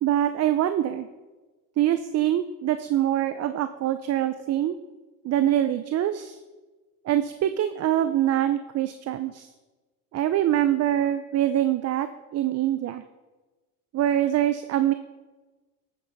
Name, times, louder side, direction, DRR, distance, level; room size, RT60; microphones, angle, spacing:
voice 1, 0.0-1.1 1.8-4.8 5.2-6.4 7.1-9.5 10.1-12.1 12.3-13.0 13.9-14.9, right 12 dB, 40° right, 11 dB, 0.6 m, -24 dB
13.5 x 9.0 x 4.0 m, 1.2 s
supercardioid pair, 100°, 39 cm